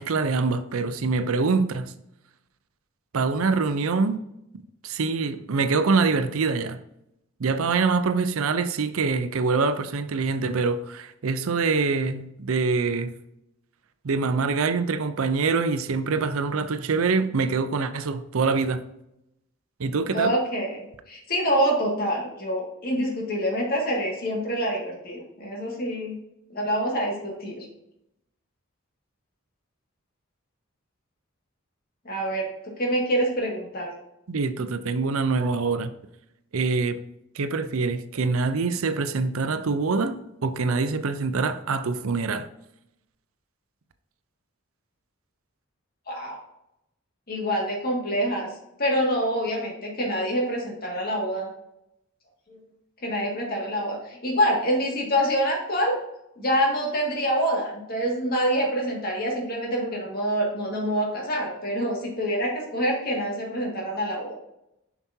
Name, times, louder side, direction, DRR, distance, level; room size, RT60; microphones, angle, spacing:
voice 1, 0.0-1.9 3.1-4.2 4.5-6.8 7.4-13.1 14.0-18.8 19.8-20.4 34.3-35.9 36.5-37.0 37.3-42.5, right 4 dB, 80° right, 0.6 m, -25 dB
voice 2, 20.1-26.2 26.5-27.7 32.1-33.9 46.1-46.4 47.3-48.5 48.8-51.5 52.5-52.6 53.0-56.0 56.4-64.3, equal, 45° left, 2.0 m, -26 dB
7.2 x 6.0 x 2.7 m
head